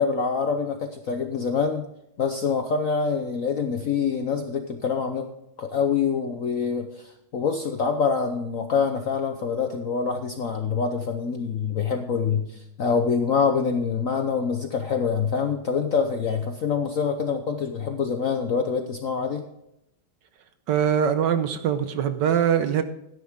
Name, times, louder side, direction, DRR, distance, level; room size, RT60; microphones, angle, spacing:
voice 1, 0.0-1.9 2.2-5.3 5.6-19.4, left 5 dB, 60° left, 6 dB, 0.9 m, -25 dB
voice 2, 20.7-22.8, right 8 dB, 65° right, 10 dB, 1.3 m, -22 dB
13.0 x 10.5 x 3.6 m, 0.82 s
omnidirectional pair, 2.3 m